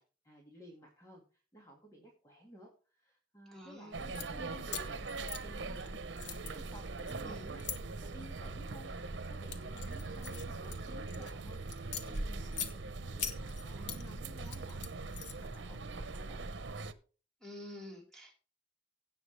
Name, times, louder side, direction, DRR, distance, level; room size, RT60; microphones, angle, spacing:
voice 1, 0.0-6.0 6.5-7.7 8.0-8.9 9.3-11.6 11.9-16.5, equal, 20° left, -1 dB, 2.1 m, -55 dB
voice 2, 3.5-4.0 7.2-7.5 17.4-18.3, left 1 dB, 5° left, -2 dB, 3.8 m, -48 dB
sound 1, 3.9-16.9, right 3 dB, 90° right, 0.9 m, -41 dB
sound 2, 4.0-4.3 4.7-5.9 6.2-7.8 8.4-8.8 9.2-11.3 11.7-12.7 13.2-14.0 14.4-15.6, left 8 dB, 75° left, 1.2 m, -42 dB
16.5 x 6.0 x 3.3 m, 0.37 s
head